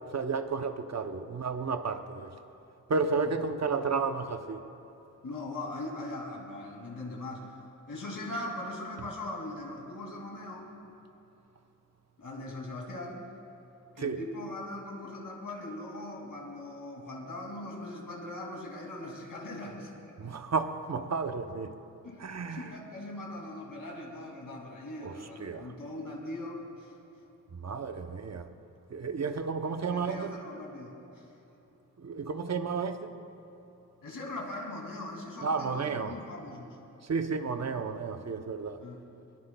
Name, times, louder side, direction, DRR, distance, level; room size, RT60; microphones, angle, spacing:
voice 1, 0.0-2.3 2.9-4.6 14.0-14.2 20.2-21.7 22.2-22.7 25.0-25.1 25.4-25.7 27.6-28.5 28.9-30.3 32.0-33.1 35.4-36.1 37.1-38.8, right 4 dB, 55° right, 8 dB, 0.7 m, -32 dB
voice 2, 5.2-7.6 7.9-10.7 12.2-13.3 14.0-19.9 22.0-26.9 29.3-31.3 34.0-36.8 38.8-39.0, left 1 dB, 80° left, -1 dB, 2.5 m, -40 dB
21.5 x 19.0 x 2.3 m, 2.9 s
wide cardioid pair, 90°, 33 cm